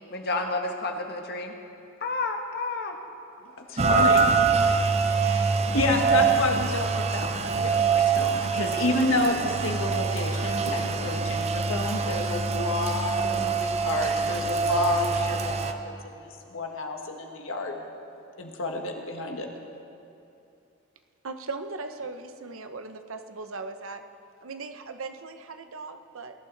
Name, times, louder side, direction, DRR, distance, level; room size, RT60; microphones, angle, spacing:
voice 1, 0.1-1.5 2.0-3.0, left 3 dB, 55° left, 4 dB, 1.3 m, -30 dB
voice 2, 3.7-17.8 18.4-19.5, left 2 dB, 70° left, 2 dB, 1.6 m, -30 dB
Rain, 3.8-15.7, right 5 dB, 30° right, 0.6 m, -25 dB
voice 3, 21.2-24.0 24.4-26.3, right 3 dB, 80° right, 7 dB, 0.9 m, -38 dB
20.5 x 11.5 x 4.0 m, 2.7 s
head